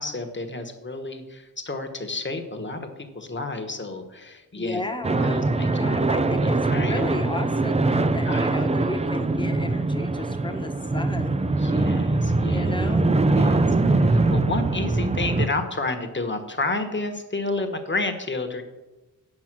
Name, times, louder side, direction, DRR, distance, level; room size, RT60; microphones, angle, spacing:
voice 1, 0.0-2.9 3.1-4.8 5.2-7.1 8.3-8.4 11.6-12.8 13.3-18.6, left 2 dB, 30° left, 6 dB, 1.3 m, -31 dB
voice 2, 4.6-11.4 12.4-13.1, left 2 dB, 15° left, 5 dB, 1.1 m, -34 dB
sound 1, 5.0-15.5, right 2 dB, 20° right, 0.4 m, -22 dB
8.8 x 5.8 x 6.0 m, 1.1 s
cardioid pair, 60°, 36 cm